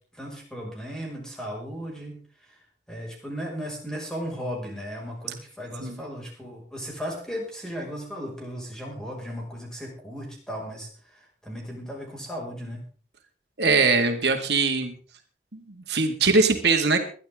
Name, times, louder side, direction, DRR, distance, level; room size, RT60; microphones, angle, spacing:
voice 1, 0.1-2.2 2.9-12.8, equal, 5° left, -2 dB, 5.9 m, -36 dB
voice 2, 13.6-15.0 15.5-17.0, right 4 dB, 75° right, 5 dB, 2.2 m, -22 dB
21.5 x 12.0 x 3.8 m, 0.41 s
head